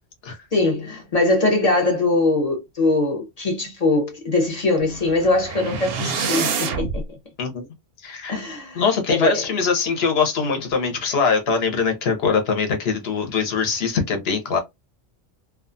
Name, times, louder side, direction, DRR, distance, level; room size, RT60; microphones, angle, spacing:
voice 1, 0.5-7.2 8.3-8.8 9.2-9.4, left 2 dB, 40° left, 0.7 m, -21 dB
sound 1, 4.8-7.0, right 5 dB, 65° right, 0.7 m, -27 dB
voice 2, 8.0-8.3 8.7-14.6, left 5 dB, 60° left, 0.9 m, -22 dB
2.4 x 2.3 x 2.5 m
omnidirectional pair, 1.2 m